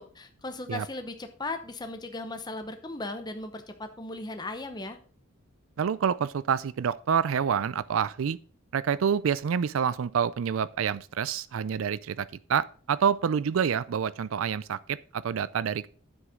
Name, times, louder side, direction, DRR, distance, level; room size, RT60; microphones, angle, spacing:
voice 1, 0.0-5.0, left 2 dB, 20° left, 0.9 m, -37 dB
voice 2, 5.8-8.4 8.7-15.9, right 7 dB, 75° right, 0.4 m, -27 dB
9.7 x 7.9 x 3.7 m
head